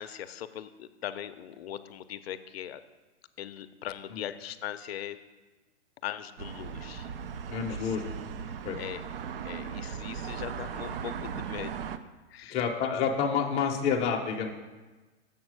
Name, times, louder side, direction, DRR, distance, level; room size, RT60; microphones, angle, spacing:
voice 1, 0.0-2.8 3.4-5.2 6.0-7.1 7.7-8.0 8.8-9.0 9.4-11.8 12.3-13.1, left 11 dB, 60° left, 12 dB, 0.5 m, -40 dB
sound 1, 6.4-12.0, right 7 dB, 55° right, 0.5 m, -38 dB
voice 2, 7.5-8.2 8.6-8.8 12.5-14.5, left 6 dB, 20° left, 2 dB, 0.6 m, -29 dB
7.2 x 4.4 x 6.2 m, 1.2 s
hypercardioid pair, 140°, 35 cm